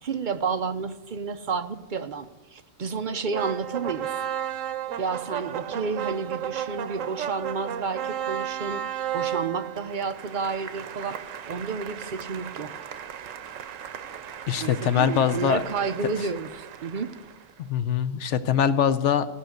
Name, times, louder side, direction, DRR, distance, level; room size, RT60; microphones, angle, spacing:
voice 1, 0.0-4.1 5.0-12.9 14.6-17.1, right 5 dB, 50° right, 9 dB, 0.6 m, -31 dB
sound 1, 3.3-17.5, right 10 dB, 90° right, 1.1 m, -34 dB
voice 2, 14.5-15.6 17.6-19.3, left 8 dB, 70° left, 12 dB, 0.9 m, -23 dB
15.0 x 5.6 x 7.8 m, 1.1 s
omnidirectional pair, 1.3 m